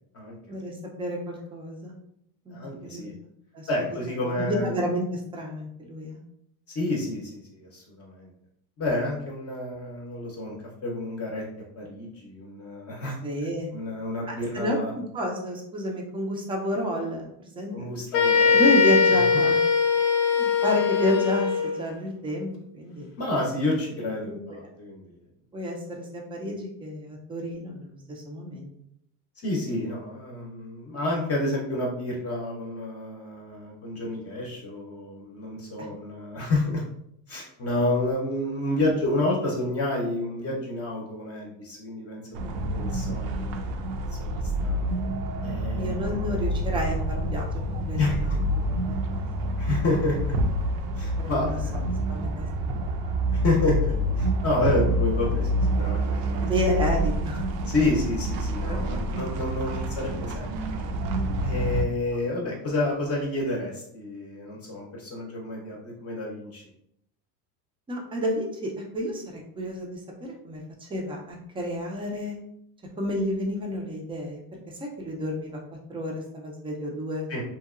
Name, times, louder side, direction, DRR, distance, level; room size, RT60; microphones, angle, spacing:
voice 1, 0.5-1.9 2.5-2.6 2.9-3.1 3.5-3.7 4.3-6.2 13.2-13.7 14.3-17.9 18.5-19.6 20.3-23.1 24.2-24.4 25.5-28.7 35.8-35.9 45.8-48.3 48.7-49.1 51.2-51.6 52.1-52.5 56.4-57.5 58.6-58.8 67.9-72.4 73.0-75.6 75.9-77.3, equal, 10° right, 0 dB, 0.3 m, -30 dB
voice 2, 2.5-3.1 3.7-4.8 6.7-8.3 8.8-10.6 10.8-11.4 11.8-13.2 13.7-14.9 17.7-18.6 19.1-19.5 23.2-25.1 29.4-36.8 37.3-44.9 45.4-46.2 48.0-48.4 49.6-50.3 50.9-51.8 53.3-56.4 57.7-60.9 61.4-66.6 77.3-77.4, left 2 dB, 30° left, -2 dB, 0.6 m, -29 dB
sound 1, 18.1-21.8, left 5 dB, 85° left, 0.6 m, -21 dB
sound 2, 42.3-61.8, right 1 dB, 80° right, 0.5 m, -27 dB
2.8 x 2.2 x 2.4 m, 0.75 s
supercardioid pair, 110°, 47 cm